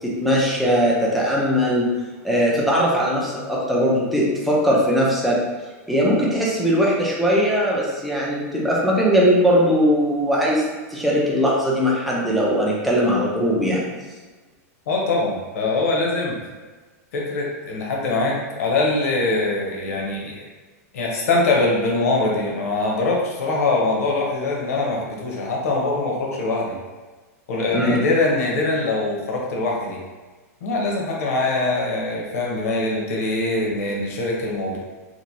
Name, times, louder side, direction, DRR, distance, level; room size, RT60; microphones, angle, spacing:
voice 1, 0.0-1.9 2.2-5.4 5.9-10.6 10.9-13.8 27.7-28.0, equal, ahead, -5 dB, 0.3 m, -20 dB
voice 2, 14.9-16.4 17.1-20.4 20.9-26.8 27.5-30.0 30.6-34.8, left 2 dB, 65° left, -2 dB, 0.8 m, -23 dB
3.0 x 2.5 x 2.6 m, 1.3 s
supercardioid pair, 175°, 9 cm